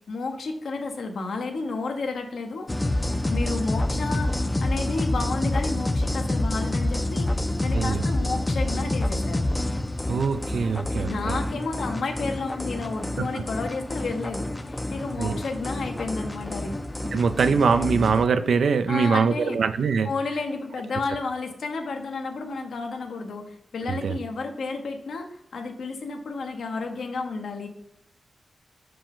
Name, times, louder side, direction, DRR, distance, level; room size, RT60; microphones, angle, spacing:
voice 1, 0.1-2.7 3.3-9.5 11.0-16.8 18.9-19.6 20.0-27.7, left 3 dB, 85° left, 4 dB, 0.9 m, -31 dB
sound 1, 2.7-18.3, left 1 dB, 20° left, 0.4 m, -28 dB
voice 2, 7.7-8.1 10.1-11.4 13.2-13.3 15.2-15.4 17.1-20.1 23.9-24.2, right 5 dB, 80° right, 10 dB, 0.4 m, -23 dB
5.8 x 5.1 x 3.6 m, 0.78 s
wide cardioid pair, 105°, 0 cm